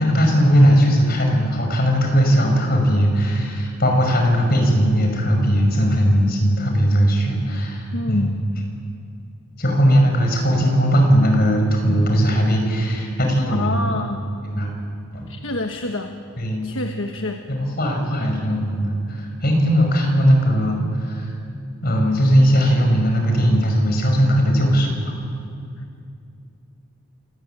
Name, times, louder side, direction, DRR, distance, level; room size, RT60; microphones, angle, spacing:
voice 1, 0.0-8.3 9.6-13.8 14.4-14.7 15.1-15.3 16.4-16.7 17.5-21.3 21.8-24.9, equal, 45° left, 2 dB, 5.7 m, -18 dB
voice 2, 7.9-8.4 13.5-14.2 15.3-16.1 16.6-17.4, left 2 dB, 60° left, 4 dB, 1.4 m, -26 dB
28.0 x 18.5 x 9.1 m, 2.5 s
head